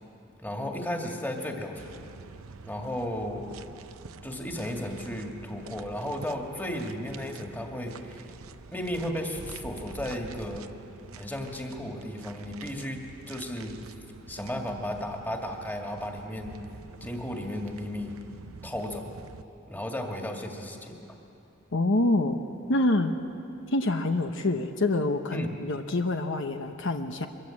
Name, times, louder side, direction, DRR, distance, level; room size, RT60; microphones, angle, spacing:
voice 1, 0.4-2.0 2.6-3.5 4.2-8.2 8.7-10.7 11.1-13.8 14.3-16.6 17.0-18.2 18.6-19.1 19.7-21.0 25.3-25.5, left 1 dB, 10° left, 2 dB, 2.2 m, -34 dB
sound 1, 1.7-19.4, right 4 dB, 85° right, 0.7 m, -47 dB
voice 2, 21.7-22.4 22.7-23.1 23.7-27.3, left 2 dB, 65° left, 6 dB, 1.0 m, -26 dB
24.5 x 22.0 x 8.7 m, 2.8 s
head